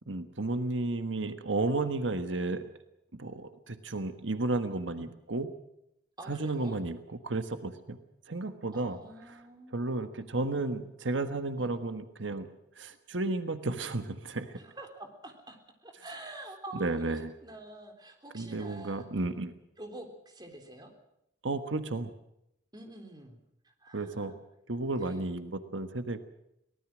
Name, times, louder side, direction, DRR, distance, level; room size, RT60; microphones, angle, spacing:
voice 1, 0.1-2.7 3.1-5.5 6.2-8.0 8.3-9.0 9.3-9.4 9.7-12.5 12.8-14.6 16.7-17.3 18.3-19.5 21.4-22.1 23.9-24.3 24.7-26.2, right 2 dB, 85° right, 9 dB, 1.5 m, -33 dB
voice 2, 6.2-6.8 8.7-9.9 11.6-11.7 14.5-19.1 19.8-20.9 22.7-23.4 23.6-24.4 25.0-25.3, right 1 dB, 20° right, 3 dB, 3.6 m, -47 dB
24.0 x 19.0 x 6.3 m, 0.80 s
head